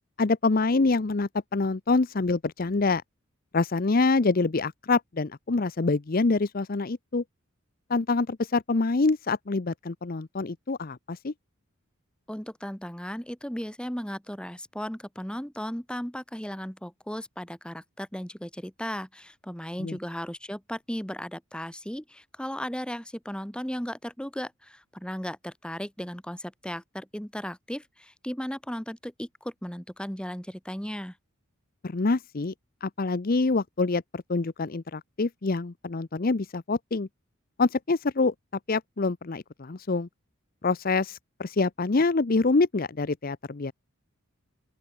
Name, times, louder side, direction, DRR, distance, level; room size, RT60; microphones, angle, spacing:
voice 1, 0.2-3.0 3.5-7.2 7.9-11.3 19.8-20.0 31.8-32.5 32.8-37.1 37.6-38.3 38.7-40.1 40.6-43.7, left 3 dB, 45° left, 0.7 m, -26 dB
voice 2, 12.3-31.2, equal, 5° left, 1.9 m, -36 dB
open air
head